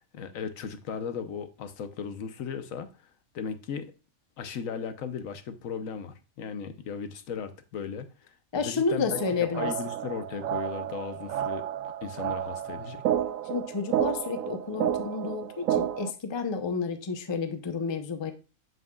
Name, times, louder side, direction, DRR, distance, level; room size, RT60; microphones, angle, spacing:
voice 1, 0.1-2.9 3.3-3.9 4.4-8.1 8.5-11.6 12.0-13.0, left 6 dB, 75° left, 1.2 m, -36 dB
voice 2, 8.5-9.7 13.5-18.3, left 5 dB, 30° left, 0.6 m, -30 dB
sound 1, 9.1-16.1, right 11 dB, 80° right, 1.0 m, -31 dB
8.0 x 7.7 x 2.3 m
omnidirectional pair, 1.4 m